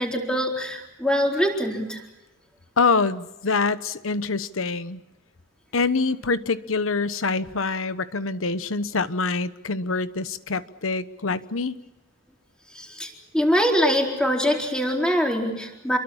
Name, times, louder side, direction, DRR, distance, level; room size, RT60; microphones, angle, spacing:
voice 1, 0.0-2.0 12.7-16.0, equal, 5° left, 1 dB, 4.2 m, -23 dB
voice 2, 2.8-5.0 5.7-11.8, left 4 dB, 85° left, 13 dB, 1.1 m, -25 dB
28.0 x 23.0 x 7.3 m, 0.98 s
head